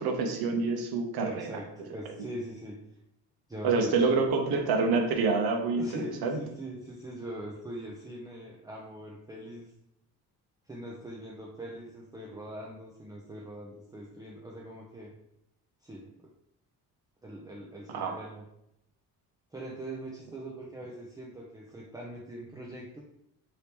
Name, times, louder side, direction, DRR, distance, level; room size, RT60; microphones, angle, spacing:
voice 1, 0.0-1.5 3.6-6.4 17.9-18.2, right 4 dB, 80° right, 3 dB, 0.7 m, -27 dB
voice 2, 1.2-2.8 3.5-4.2 5.8-9.7 10.7-15.1 15.8-16.3 17.2-18.4 19.5-23.0, right 1 dB, 10° right, -3 dB, 0.4 m, -42 dB
2.9 x 2.8 x 3.4 m, 0.81 s
cardioid pair, 115°, 37 cm